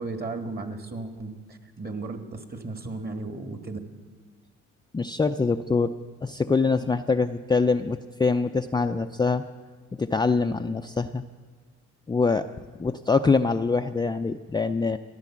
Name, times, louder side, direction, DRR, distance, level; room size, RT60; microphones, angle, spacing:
voice 1, 0.0-3.8, right 3 dB, 30° right, 8 dB, 1.7 m, -35 dB
voice 2, 4.9-5.9 6.2-9.4 10.0-11.2 12.1-12.4 12.8-15.0, left 4 dB, 15° left, 6 dB, 0.4 m, -24 dB
15.0 x 10.5 x 7.3 m, 1.4 s
cardioid pair, 85°, 30 cm